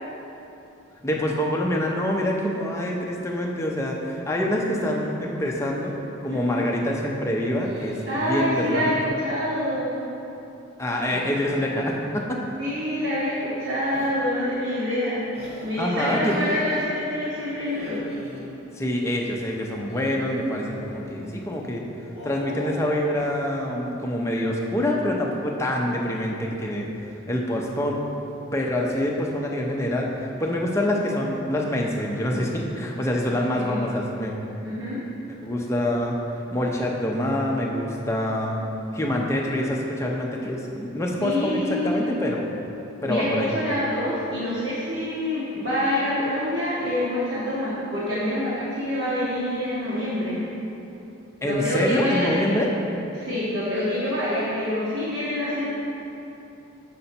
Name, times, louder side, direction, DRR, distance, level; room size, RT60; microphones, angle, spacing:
voice 1, 1.0-6.0 6.2-9.0 10.8-12.4 15.8-16.4 18.8-21.8 22.2-26.9 27.3-28.0 28.5-34.3 35.4-36.1 36.5-38.6 38.9-42.5 43.0-43.5 51.4-52.7, left 1 dB, 15° left, -1 dB, 0.5 m, -26 dB
sound 1, 4.6-5.0 5.4-5.9 7.6-8.9 10.9-12.3 13.7-14.1 15.3-16.9 17.6-18.4 19.9-21.0 22.0-23.0, equal, 30° right, 1.0 m, -40 dB
voice 2, 6.3-6.7 8.1-9.9 12.6-15.2 15.6-18.1 33.5-33.8 34.6-35.0 41.2-42.2 43.0-50.4 51.4-52.6 53.1-55.8, left 1 dB, 55° right, -10 dB, 1.2 m, -26 dB
6.6 x 5.6 x 4.2 m, 2.9 s
head